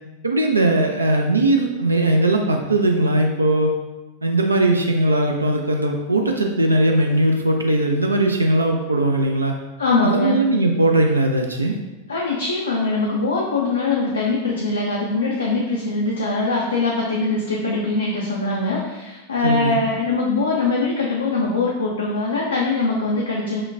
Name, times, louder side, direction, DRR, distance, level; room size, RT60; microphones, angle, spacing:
voice 1, 0.2-3.7 4.2-9.5 10.0-11.8 19.4-19.8, right 1 dB, 80° right, 2 dB, 0.3 m, -19 dB
voice 2, 9.8-10.4 12.1-23.6, left 3 dB, 75° left, -3 dB, 0.5 m, -22 dB
5.6 x 2.2 x 2.5 m, 1.1 s
figure-of-eight pair, 90°, 0 cm